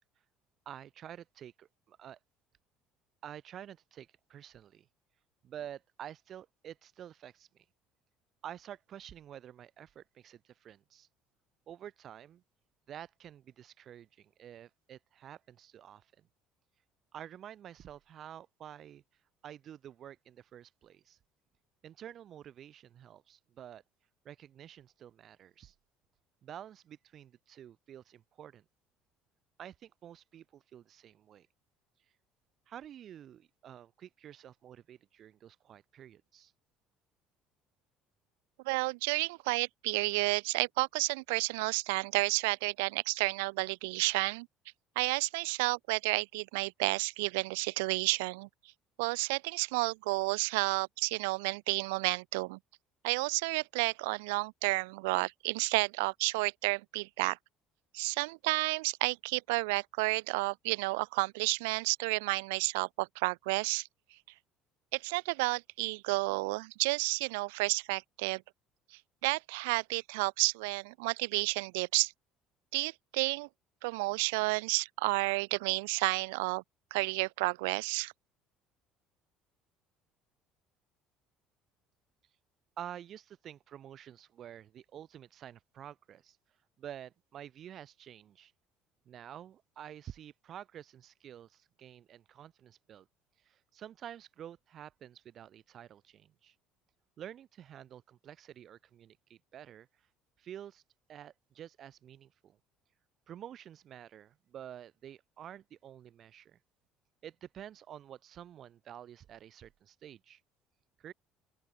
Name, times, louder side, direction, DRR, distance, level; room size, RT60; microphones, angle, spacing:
voice 1, 0.7-2.2 3.2-4.9 5.4-7.6 8.4-11.1 11.7-12.4 12.9-16.3 17.1-19.0 19.4-21.2 21.8-23.8 24.2-25.7 26.4-28.6 29.6-31.5 32.7-36.5 82.8-86.4 86.8-88.5 89.1-93.1 93.4-96.5 97.2-99.9 100.4-100.8 101.1-102.6 103.3-106.6 107.2-110.4 111.0-111.1, right 10 dB, 50° right, 2.3 m, -49 dB
voice 2, 38.6-44.5 45.0-48.5 49.0-52.6 53.0-57.4 57.9-63.9 64.9-68.4 69.2-72.1 72.7-73.5 73.8-76.6 76.9-78.1, right 27 dB, 90° right, 0.7 m, -31 dB
open air
supercardioid pair, 85°, 0 cm